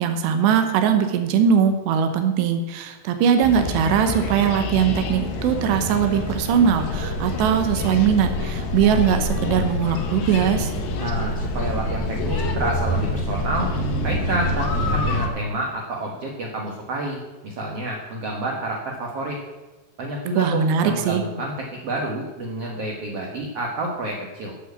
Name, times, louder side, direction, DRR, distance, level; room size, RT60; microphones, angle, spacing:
voice 1, 0.0-10.7 20.4-21.2, right 8 dB, 90° right, 7 dB, 3.2 m, -20 dB
sound 1, 3.4-15.3, left 2 dB, 85° left, 3.7 m, -26 dB
voice 2, 11.0-13.7 14.0-19.4 20.0-21.5 21.8-24.5, right 2 dB, 60° right, -1 dB, 1.6 m, -29 dB
12.0 x 6.6 x 8.3 m, 1.1 s
omnidirectional pair, 4.8 m